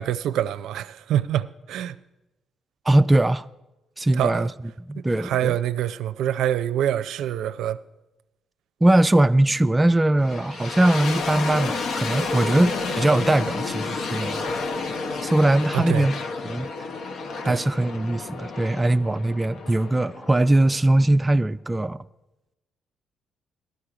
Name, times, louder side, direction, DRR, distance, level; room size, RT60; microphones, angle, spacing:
voice 1, 0.0-2.0 4.1-4.5 5.1-7.8 15.7-16.1 17.4-17.6, right 11 dB, 80° right, 0.5 m, -25 dB
voice 2, 2.9-3.5 4.0-4.5 4.9-5.6 8.8-14.6 15.2-16.1 16.4-16.7 17.5-22.0, right 1 dB, 15° right, 0.4 m, -21 dB
sound 1, 10.2-21.1, left 4 dB, 65° left, 1.1 m, -31 dB
17.5 x 12.5 x 5.0 m
cardioid pair, 90°, 0 cm